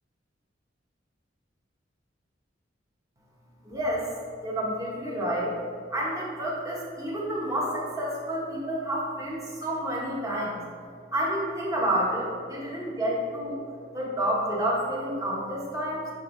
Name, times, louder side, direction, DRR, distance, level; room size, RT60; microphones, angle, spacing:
voice 1, 3.6-4.1 4.4-5.6 5.9-10.6 11.1-13.6 13.9-16.1, right 1 dB, 15° right, -4 dB, 1.0 m, -29 dB
7.0 x 5.2 x 2.6 m, 2.2 s
head